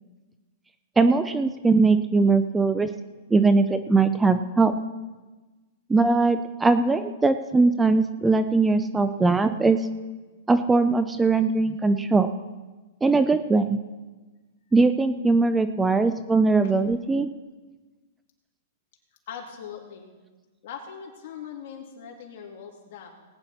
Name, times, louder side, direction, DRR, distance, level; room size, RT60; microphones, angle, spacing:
voice 1, 1.0-2.9 3.3-4.7 5.9-9.8 10.5-12.3 13.0-13.8 14.7-17.3, right 3 dB, 10° right, 11 dB, 0.5 m, -20 dB
voice 2, 19.3-20.1 20.6-23.2, left 7 dB, 55° left, -1 dB, 3.0 m, -40 dB
19.0 x 9.7 x 4.3 m, 1.2 s
hypercardioid pair, 140°, 0 cm